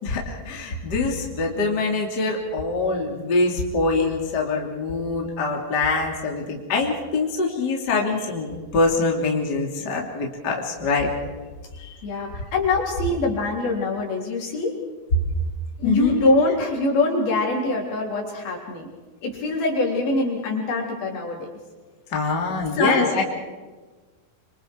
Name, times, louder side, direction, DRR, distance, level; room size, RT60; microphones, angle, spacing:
voice 1, 0.0-11.1 11.8-11.9 15.8-16.1 22.1-23.2, left 3 dB, 25° left, -1 dB, 3.0 m, -24 dB
voice 2, 12.0-14.7 15.8-18.9 19.2-21.5 22.7-23.2, left 2 dB, 60° left, -1 dB, 5.6 m, -24 dB
26.0 x 26.0 x 4.8 m, 1.3 s
omnidirectional pair, 4.8 m